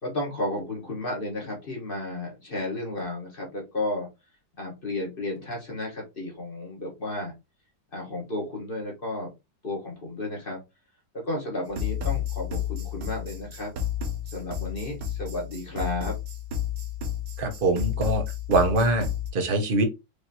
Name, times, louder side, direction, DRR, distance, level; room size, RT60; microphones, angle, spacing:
voice 1, 0.0-4.1 4.6-7.3 7.9-9.3 9.6-10.6 11.1-13.7 14.3-16.1, left 2 dB, 30° left, 1.2 m, -33 dB
sound 1, 11.7-19.3, left 9 dB, 65° right, 1.3 m, -31 dB
voice 2, 17.4-18.2 18.5-19.8, right 2 dB, 45° right, 0.7 m, -23 dB
5.0 x 2.8 x 2.8 m
omnidirectional pair, 2.1 m